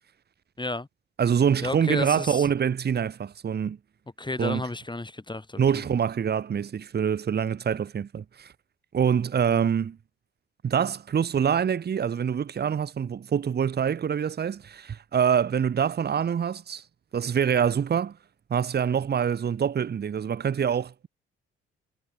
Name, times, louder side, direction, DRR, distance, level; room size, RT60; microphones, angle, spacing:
voice 1, 0.6-0.9 1.6-2.5 4.2-5.6, left 2 dB, 15° left, 3.7 m, -32 dB
voice 2, 1.2-3.8 4.4-4.6 5.6-8.5 8.9-10.0 10.6-16.8 17.1-18.2 18.5-21.1, right 7 dB, 35° right, 1.0 m, -25 dB
figure-of-eight pair, 45°, 30 cm